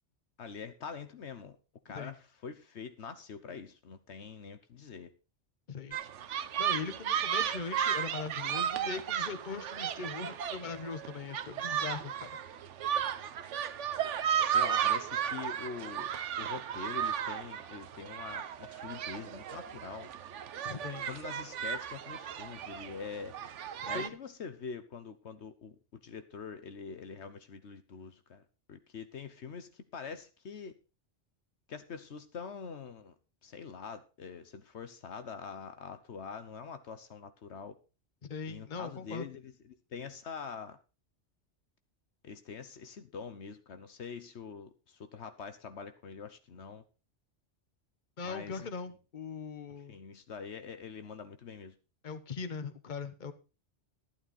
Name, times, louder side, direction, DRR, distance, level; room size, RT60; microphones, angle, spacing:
voice 1, 0.4-1.6 1.8-5.1 14.4-16.1 16.4-20.1 21.1-23.3 23.9-28.4 28.7-30.7 31.7-33.1 33.4-37.8 38.5-40.8 42.2-46.8 48.2-48.7 49.9-51.7, left 6 dB, 75° left, 11 dB, 1.3 m, -44 dB
sound 1, 5.9-24.1, right 9 dB, 90° right, 1.1 m, -34 dB
voice 2, 6.3-12.3 20.6-21.1 23.8-24.1 38.2-39.3 48.2-49.9 52.0-53.3, left 5 dB, 45° left, 11 dB, 1.2 m, -40 dB
12.0 x 11.5 x 4.1 m, 0.32 s
omnidirectional pair, 1.2 m